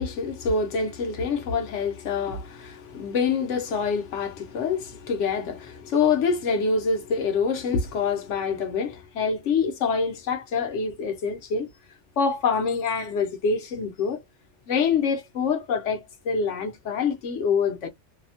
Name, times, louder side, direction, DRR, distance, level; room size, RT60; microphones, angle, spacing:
voice 1, 0.0-11.7 12.2-14.2 14.7-17.9, left 5 dB, 85° left, 1.1 m, -26 dB
2.7 x 2.0 x 2.7 m
omnidirectional pair, 1.2 m